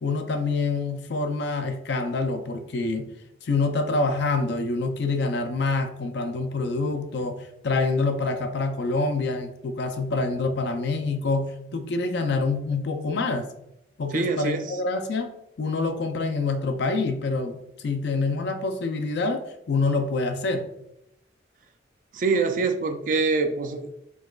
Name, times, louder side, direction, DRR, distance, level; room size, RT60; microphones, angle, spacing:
voice 1, 0.0-3.1 3.4-13.5 14.0-15.3 15.6-20.7, left 3 dB, 60° left, 6 dB, 0.4 m, -26 dB
voice 2, 14.1-14.8 22.1-24.0, right 4 dB, 45° right, 6 dB, 0.3 m, -25 dB
4.5 x 2.2 x 2.3 m, 0.80 s
head